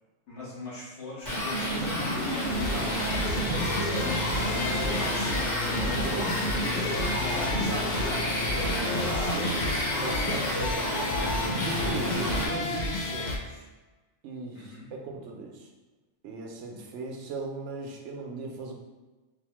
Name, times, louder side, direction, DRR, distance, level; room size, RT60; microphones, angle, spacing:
voice 1, 0.3-6.1 6.7-11.2 14.5-14.9, left 1 dB, 75° left, -7 dB, 1.5 m, -41 dB
sound 1, 1.2-12.5, equal, 40° left, 1.2 m, -30 dB
sound 2, 2.5-13.4, left 2 dB, 55° left, 0.5 m, -31 dB
voice 2, 5.8-6.9 8.5-9.2 10.0-10.8 11.6-13.7 14.2-15.7 16.2-18.7, right 3 dB, 85° right, 1 dB, 0.9 m, -38 dB
4.6 x 2.1 x 3.0 m, 1.2 s
omnidirectional pair, 1.2 m